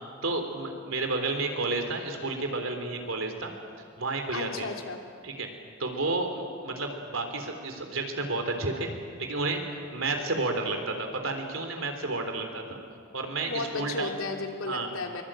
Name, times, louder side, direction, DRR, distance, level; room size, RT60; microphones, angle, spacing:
voice 1, 0.2-3.5 4.0-4.7 5.2-5.5 5.8-8.9 9.2-12.6 13.1-14.1 14.7-14.9, right 3 dB, 70° right, 5 dB, 3.7 m, -31 dB
voice 2, 4.3-5.0 13.5-15.2, left 3 dB, 80° left, 2 dB, 3.2 m, -34 dB
24.0 x 23.5 x 9.0 m, 2.3 s
head